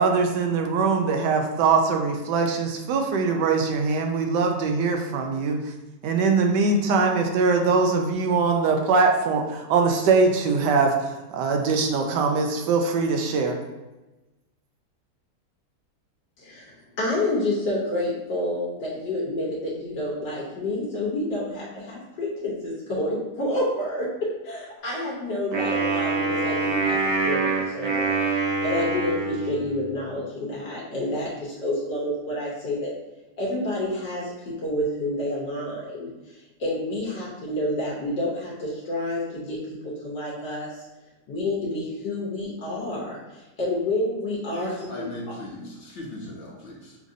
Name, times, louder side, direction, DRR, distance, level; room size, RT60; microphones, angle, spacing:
voice 1, 0.0-5.6 6.0-13.6, right 4 dB, 80° right, 3 dB, 1.2 m, -22 dB
voice 2, 16.4-27.0 27.2-28.2 28.6-32.9 33.4-40.8 41.3-45.1, left 1 dB, 75° left, -5 dB, 1.4 m, -29 dB
Wind instrument woodwind instrument, 25.5-30.0, right 3 dB, 60° right, 0.8 m, -25 dB
voice 3, 44.5-47.0, left 1 dB, 50° left, -4 dB, 0.9 m, -38 dB
6.0 x 2.6 x 2.6 m, 1.1 s
omnidirectional pair, 1.8 m